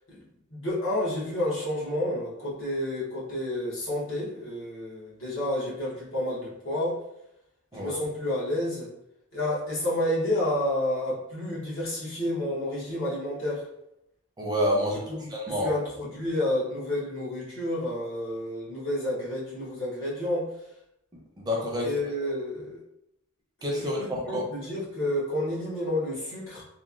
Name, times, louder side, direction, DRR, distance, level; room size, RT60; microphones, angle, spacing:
voice 1, 0.1-7.0 7.7-8.9 9.3-13.7 15.1-20.6 21.8-22.8 23.8-26.6, left 1 dB, 65° left, -7 dB, 1.0 m, -30 dB
voice 2, 14.4-15.0 15.3-15.7 21.4-21.9 23.6-24.4, equal, 20° right, -3 dB, 0.5 m, -28 dB
3.0 x 2.1 x 2.4 m, 0.80 s
head